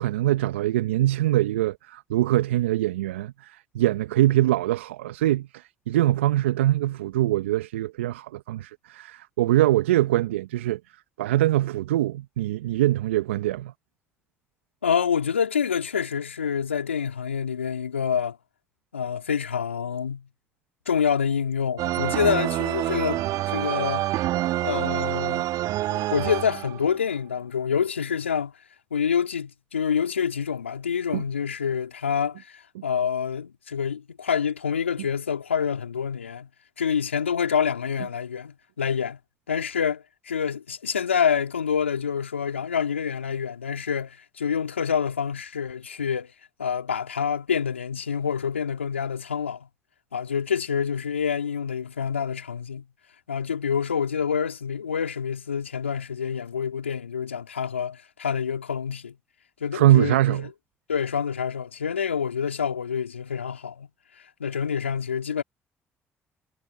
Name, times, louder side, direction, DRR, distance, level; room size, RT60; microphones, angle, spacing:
voice 1, 0.0-10.8 11.2-13.7 31.1-31.2 59.7-60.5, right 14 dB, 80° right, 1.3 m, -23 dB
voice 2, 14.8-18.4 18.9-20.3 20.9-24.1 24.6-25.5 25.9-28.5 28.9-36.5 36.8-39.2 39.5-46.3 46.6-49.7 50.1-52.8 53.3-59.2 59.6-60.4 60.9-63.9 64.4-65.4, left 7 dB, 90° left, 4.3 m, -27 dB
sound 1, 21.8-27.0, right 15 dB, 65° right, 2.1 m, -27 dB
figure-of-eight pair, 45°, 7 cm